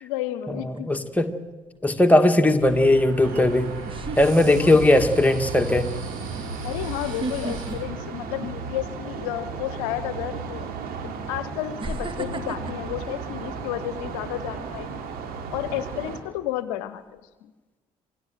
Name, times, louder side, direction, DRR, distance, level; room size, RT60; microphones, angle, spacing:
voice 1, 0.0-0.9 4.6-4.7 6.6-10.7 11.0-15.0 15.5-17.5, left 13 dB, 70° left, 14 dB, 0.9 m, -32 dB
voice 2, 0.5-1.3 1.8-3.7 4.2-5.9, left 1 dB, 10° left, 5 dB, 2.1 m, -19 dB
sound 1, 0.7-1.2 3.1-3.2 3.9-5.0 5.4-5.7 7.0-8.9 9.2-9.5 10.5-10.6 11.8-14.1 14.5-14.8, right 2 dB, 30° right, 2.0 m, -35 dB
sound 2, 2.6-7.7, right 4 dB, 75° right, 5.0 m, -37 dB
sound 3, 3.2-16.2, right 5 dB, 60° right, 2.9 m, -35 dB
26.5 x 17.0 x 7.7 m, 1.3 s
figure-of-eight pair, 45°, 18 cm